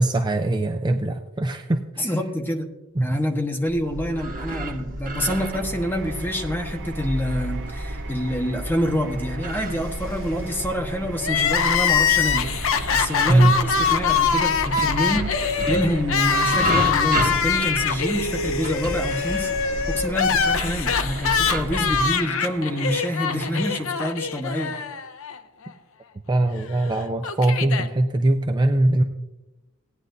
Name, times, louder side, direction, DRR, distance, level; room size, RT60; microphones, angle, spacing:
voice 1, 0.0-2.1 3.0-3.2 13.3-13.6 21.9-22.0 26.3-29.0, right 1 dB, 20° right, 5 dB, 0.5 m, -21 dB
voice 2, 2.0-2.7 3.0-12.5 12.9-24.7, equal, 10° left, 2 dB, 1.2 m, -27 dB
sound 1, 3.7-22.0, right 1 dB, 40° right, 1.0 m, -32 dB
sound 2, 5.4-23.9, right 4 dB, 65° right, 0.9 m, -41 dB
Crying sobbing, 11.2-25.4 25.6-25.7 26.7-27.9, left 6 dB, 70° left, 0.7 m, -23 dB
18.0 x 9.7 x 2.6 m, 1.0 s
head